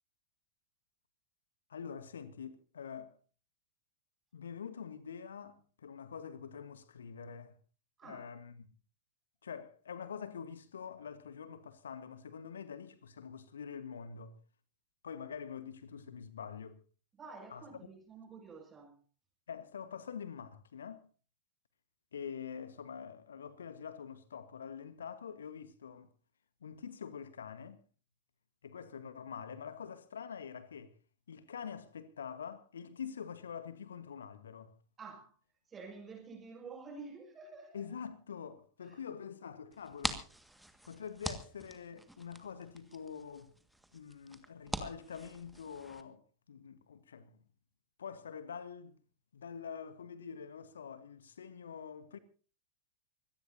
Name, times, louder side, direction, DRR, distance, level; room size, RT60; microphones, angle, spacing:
voice 1, 1.7-3.1 4.3-7.5 8.0-8.7 9.4-14.3 15.0-16.8 17.5-17.6 19.5-21.0 22.1-26.1 26.6-27.8 28.6-30.9 31.3-34.7 37.7-40.3 40.8-43.5 43.9-46.2 46.5-47.4 48.0-49.0 49.3-52.2, left 7 dB, 70° left, 1.3 m, -45 dB
voice 2, 17.2-19.0 35.0-35.3 35.7-37.8 38.8-39.0, right 4 dB, 20° right, 6.7 m, -49 dB
sound 1, 39.7-46.0, right 1 dB, 5° right, 1.8 m, -44 dB
24.5 x 17.5 x 2.7 m
figure-of-eight pair, 90°, 0 cm